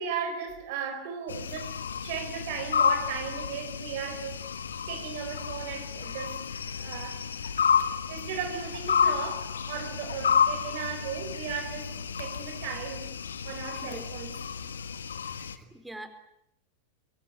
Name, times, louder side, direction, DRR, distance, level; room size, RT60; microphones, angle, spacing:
voice 1, 0.0-1.7 2.0-4.4 4.9-6.4 6.8-7.5 8.1-13.2 13.4-14.4 15.3-15.5, right 7 dB, 50° right, 4.5 m, -36 dB
sound 1, 1.3-15.6, left 7 dB, 70° left, 1.6 m, -30 dB
voice 2, 15.6-16.1, right 1 dB, 5° right, 4.1 m, -43 dB
26.0 x 22.5 x 9.2 m
figure-of-eight pair, 90°, 0 cm